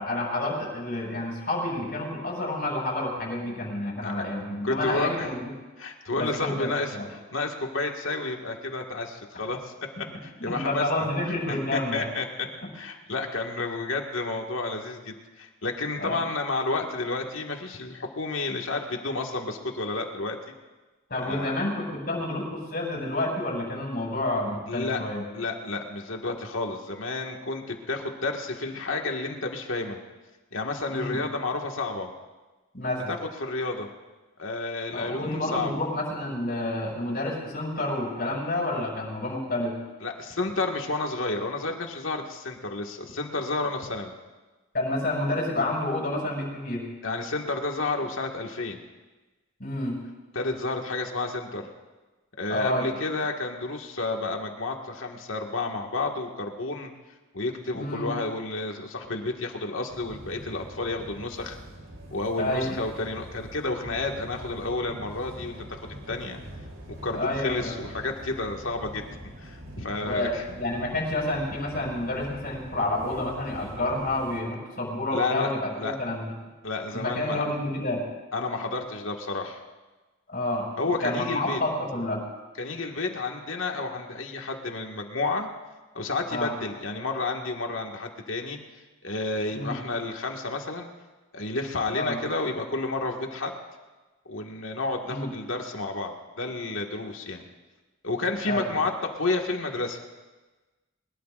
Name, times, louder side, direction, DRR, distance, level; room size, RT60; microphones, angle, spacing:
voice 1, 0.0-5.5 6.2-7.1 10.4-12.1 12.6-12.7 16.0-16.1 21.1-25.3 30.9-31.2 32.7-33.1 34.9-39.7 44.7-46.8 49.6-50.0 52.5-52.9 57.7-58.1 62.4-62.8 67.1-67.8 70.0-76.3 76.9-78.0 80.3-80.7 81.0-82.2 86.3-86.5 89.5-89.8 91.9-92.2 95.1-95.3 98.4-98.6, left 1 dB, 50° left, -4 dB, 6.2 m, -29 dB
voice 2, 4.6-5.3 5.8-9.7 10.2-11.1 11.5-12.5 12.7-20.4 21.2-21.6 24.7-25.0 25.3-30.0 30.5-32.1 33.1-33.9 34.4-35.7 40.0-44.1 47.0-48.8 50.3-51.7 52.4-56.9 57.3-61.6 62.1-66.4 67.0-69.0 69.4-70.4 75.1-75.5 75.8-76.0 76.6-77.5 78.3-79.6 80.8-81.6 82.6-85.5 85.9-88.6 89.0-90.9 91.3-93.5 94.3-97.5 98.0-100.0, left 3 dB, 80° left, 2 dB, 1.9 m, -31 dB
sound 1, 59.9-74.4, right 1 dB, 85° right, 3.5 m, -43 dB
23.0 x 21.0 x 2.6 m, 1.2 s
head